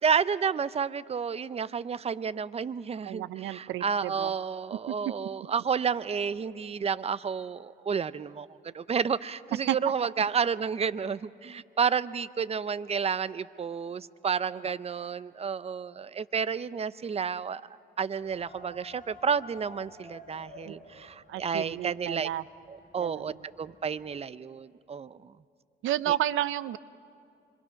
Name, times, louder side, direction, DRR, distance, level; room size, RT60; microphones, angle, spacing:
voice 1, 0.0-17.6 18.0-22.3 22.7-25.3 26.1-26.2, right 6 dB, 30° right, 16 dB, 0.6 m, -31 dB
voice 2, 3.1-4.3 4.9-5.0 9.7-9.8 20.7-20.8 21.3-22.4 23.0-23.4 25.8-26.8, right 13 dB, 80° right, 17 dB, 0.6 m, -31 dB
sound 1, 18.2-24.1, left 1 dB, 40° left, 7.7 m, -52 dB
26.5 x 23.5 x 5.8 m, 2.5 s
cardioid pair, 90°, 20 cm